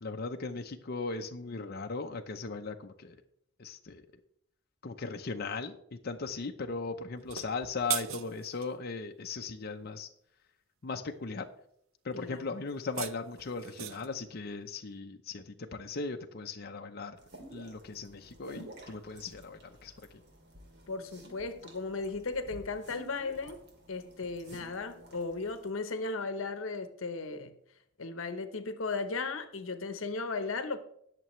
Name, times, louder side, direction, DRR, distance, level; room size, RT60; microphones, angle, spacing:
voice 1, 0.0-3.2 3.6-4.1 4.8-10.1 10.8-11.5 12.0-17.2 17.5-20.2, left 4 dB, 50° left, 0.7 m, -38 dB
sound 1, 7.2-8.7 12.7-14.2, right 11 dB, 90° right, 0.6 m, -39 dB
voice 2, 12.1-12.4 20.9-23.6 23.9-27.5 28.0-30.8, left 3 dB, 80° left, 0.9 m, -36 dB
sound 2, 17.2-25.7, right 1 dB, 55° right, 2.5 m, -52 dB
20.0 x 6.8 x 3.1 m
head